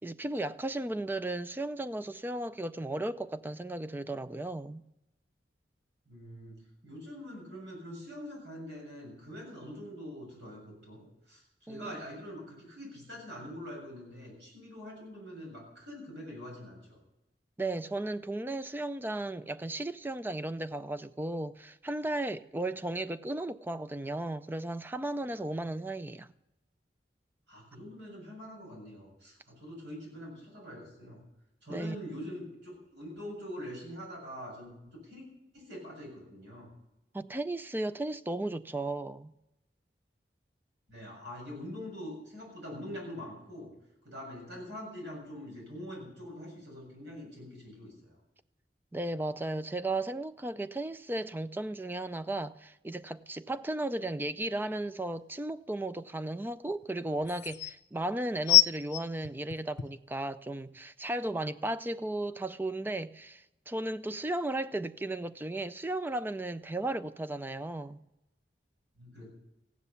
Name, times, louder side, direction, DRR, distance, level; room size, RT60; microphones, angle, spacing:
voice 1, 0.0-4.8 11.7-12.0 17.6-26.3 31.7-32.0 37.1-39.3 48.9-68.0, right 2 dB, 10° right, 0.4 m, -35 dB
voice 2, 6.1-17.0 27.5-31.2 31.6-35.2 35.5-36.7 40.9-43.7 44.0-48.2 69.0-69.3, equal, 75° right, 7.4 m, -44 dB
sound 1, 55.2-55.3 56.8-56.9 57.2-57.7 58.5-60.1 60.8-60.9, left 15 dB, 75° left, 0.6 m, -25 dB
15.5 x 9.9 x 6.9 m
head